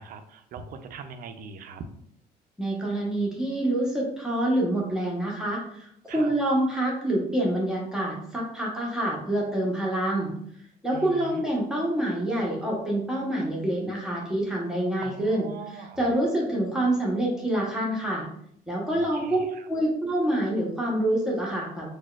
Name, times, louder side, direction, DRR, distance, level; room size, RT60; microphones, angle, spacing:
voice 1, 0.0-1.8 6.1-6.3 10.9-11.4 15.0-16.1 18.9-19.7, right 5 dB, 60° right, 8 dB, 0.4 m, -41 dB
voice 2, 2.6-10.3 10.8-15.5 16.0-18.3 18.7-19.4 19.7-21.9, right 1 dB, 5° right, -4 dB, 0.9 m, -26 dB
4.0 x 2.3 x 2.3 m, 0.70 s
cardioid pair, 110°, 17 cm